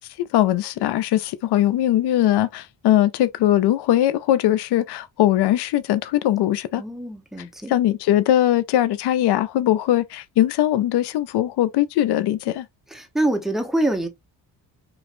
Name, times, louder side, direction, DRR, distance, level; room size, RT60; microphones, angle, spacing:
voice 1, 0.2-6.8 7.7-12.6, left 13 dB, 65° left, 0.5 m, -20 dB
voice 2, 6.8-7.7 12.9-14.1, right 1 dB, ahead, 0.9 m, -25 dB
3.1 x 2.5 x 2.6 m
cardioid pair, 70°, 44 cm